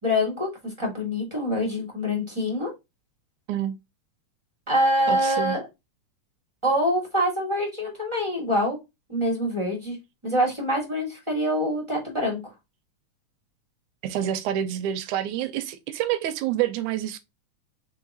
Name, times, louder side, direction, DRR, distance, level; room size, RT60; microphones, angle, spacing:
voice 1, 0.0-2.7 4.7-5.7 6.6-8.8 9.1-10.0 10.2-12.4, equal, 10° right, 1.5 m, -25 dB
voice 2, 5.1-5.6 14.0-17.2, right 11 dB, 80° right, 1.9 m, -27 dB
4.9 x 3.7 x 2.8 m
omnidirectional pair, 3.7 m